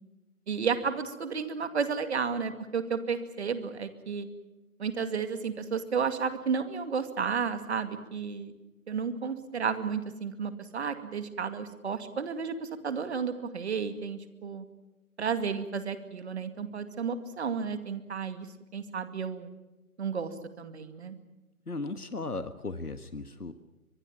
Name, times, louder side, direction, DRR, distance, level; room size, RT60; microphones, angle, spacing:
voice 1, 0.5-4.3 4.8-8.5 8.9-14.7 15.2-18.5 18.7-19.5 20.0-20.3 20.6-21.1, right 6 dB, 45° right, 10 dB, 2.4 m, -32 dB
voice 2, 21.7-23.5, left 3 dB, 90° left, 11 dB, 1.6 m, -36 dB
23.0 x 23.0 x 7.4 m, 1.1 s
figure-of-eight pair, 145°, 44 cm